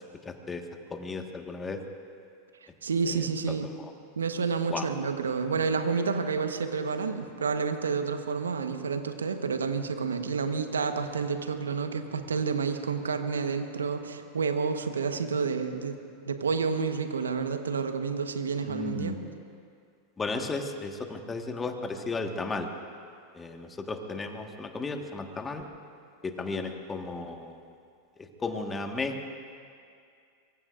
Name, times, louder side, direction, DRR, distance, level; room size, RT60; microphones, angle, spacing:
voice 1, 0.2-0.6 0.9-1.8 3.0-3.9 4.7-4.9 18.6-19.2 20.2-22.7 23.3-25.7 26.2-27.6 28.4-29.3, left 3 dB, 20° left, 4 dB, 1.6 m, -34 dB
voice 2, 2.8-3.7 4.2-16.0 16.3-19.2, right 5 dB, 85° right, 7 dB, 1.2 m, -29 dB
24.0 x 22.5 x 2.6 m, 2.3 s
hypercardioid pair, 90°, 0 cm